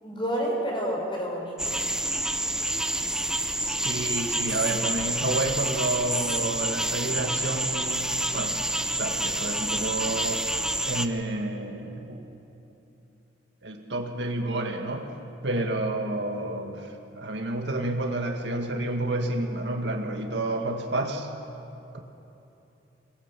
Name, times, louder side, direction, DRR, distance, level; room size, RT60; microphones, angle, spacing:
voice 1, 0.0-1.7, equal, 30° left, -1 dB, 5.2 m, -29 dB
sound 1, 1.6-11.1, right 1 dB, 5° right, 0.7 m, -28 dB
voice 2, 3.7-8.6 9.0-10.5 10.8-12.2 13.6-15.2 15.4-21.3 21.9-22.0, right 2 dB, 75° right, 3 dB, 2.0 m, -30 dB
23.0 x 19.0 x 7.6 m, 2.9 s
head